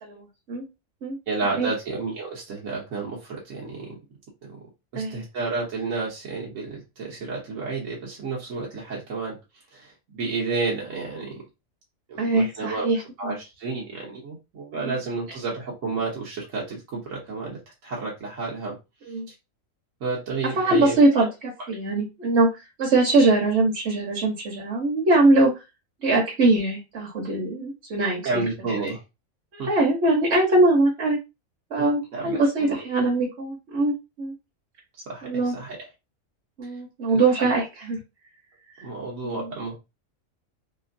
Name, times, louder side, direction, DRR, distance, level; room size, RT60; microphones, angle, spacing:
voice 1, 1.3-4.0 4.5-9.4 9.7-11.4 12.1-18.8 19.3-19.4 20.0-21.0 28.2-29.0 29.6-29.7 31.8-32.9 35.1-35.9 36.6-36.7 37.1-37.5 38.8-39.7, right 3 dB, 75° right, -3 dB, 1.3 m, -31 dB
voice 2, 12.2-13.0 13.2-13.4 14.8-14.9 19.1-19.3 20.6-22.5 22.8-25.5 26.0-28.5 29.5-31.2 31.7-34.3 35.2-35.5 36.6-38.0 39.2-39.4, right 2 dB, 55° right, -3 dB, 1.2 m, -22 dB
3.3 x 3.0 x 2.5 m, 0.25 s
omnidirectional pair, 1.4 m